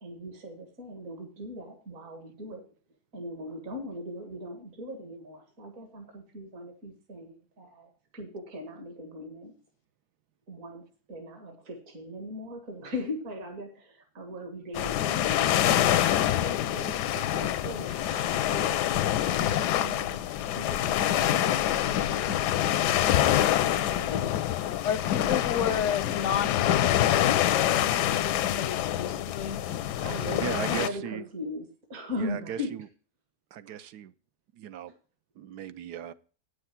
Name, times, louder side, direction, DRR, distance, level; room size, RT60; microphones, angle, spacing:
voice 1, 0.0-2.6 3.1-9.5 10.5-18.8 19.4-22.4 25.2-25.8 30.0-32.7 33.6-33.8 34.9-35.0, left 1 dB, 55° right, 2.2 m, -40 dB
sound 1, 14.7-30.9, left 12 dB, 90° left, 1.2 m, -26 dB
voice 2, 24.8-29.6, left 8 dB, 65° left, 0.8 m, -32 dB
voice 3, 30.3-31.3 32.2-32.9 33.5-34.1 34.5-34.9 35.4-36.1, right 10 dB, 80° right, 1.3 m, -37 dB
9.0 x 6.9 x 5.8 m
omnidirectional pair, 1.7 m